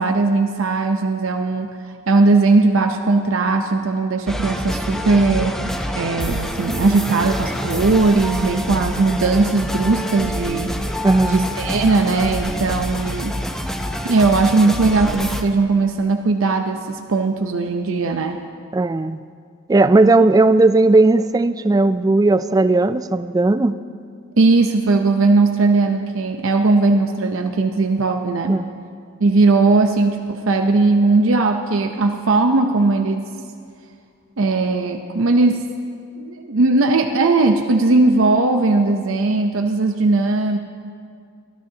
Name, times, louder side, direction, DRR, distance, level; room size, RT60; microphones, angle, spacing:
voice 1, 0.0-1.7 2.1-5.6 5.9-10.7 11.2-13.3 14.0-18.4 24.4-28.6 29.2-33.2 34.4-35.6 36.2-40.6, right 3 dB, 75° right, 4 dB, 0.7 m, -18 dB
sound 1, 4.3-15.4, equal, ahead, 0.7 m, -26 dB
voice 2, 11.0-11.5 18.7-19.2 19.7-23.7 28.5-28.7, right 2 dB, 20° right, 13 dB, 0.3 m, -16 dB
23.0 x 13.5 x 2.8 m, 2.2 s
head